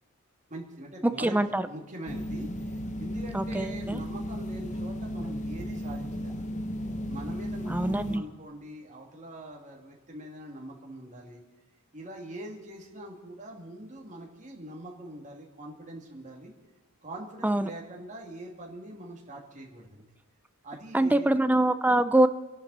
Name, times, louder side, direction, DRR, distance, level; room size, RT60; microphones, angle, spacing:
voice 1, 0.5-2.5 3.0-6.5 7.1-11.4 11.9-16.5 17.0-20.1 20.6-21.3, right 1 dB, 35° right, 0 dB, 2.6 m, -43 dB
voice 2, 1.0-1.6 3.3-4.0 7.7-8.2 17.4-17.7 20.9-22.3, right 1 dB, 5° right, 12 dB, 0.5 m, -24 dB
sound 1, 2.1-8.2, equal, 35° left, 1.0 m, -34 dB
28.5 x 11.5 x 4.3 m, 1.2 s
head